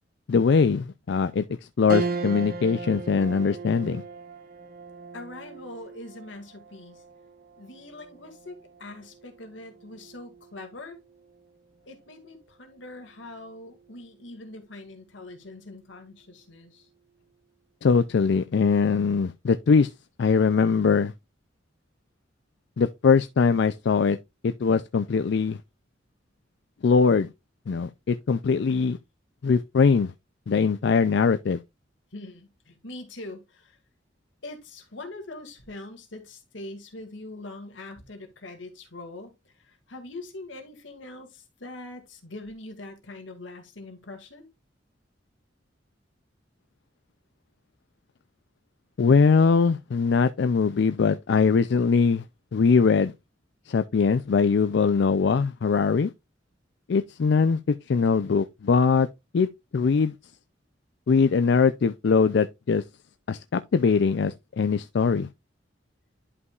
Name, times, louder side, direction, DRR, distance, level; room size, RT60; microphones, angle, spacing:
voice 1, 0.3-1.4 1.8-4.0 17.8-19.9 20.2-21.1 22.8-24.2 24.4-25.6 26.8-27.3 27.7-29.0 29.4-30.1 30.5-31.6 49.0-52.2 52.5-53.1 53.7-56.1 56.9-57.6 57.9-59.1 59.3-59.5 59.7-60.1 61.1-62.8 63.3-65.3, left 5 dB, 65° left, 0.4 m, -21 dB
sound 1, 1.9-11.5 12.0-12.1 13.4-13.9, right 4 dB, 55° right, 1.0 m, -37 dB
voice 2, 5.1-7.0 7.6-11.0 11.9-16.9 32.1-33.8 34.4-44.5, left 2 dB, 85° left, 2.1 m, -42 dB
11.0 x 5.4 x 2.4 m
head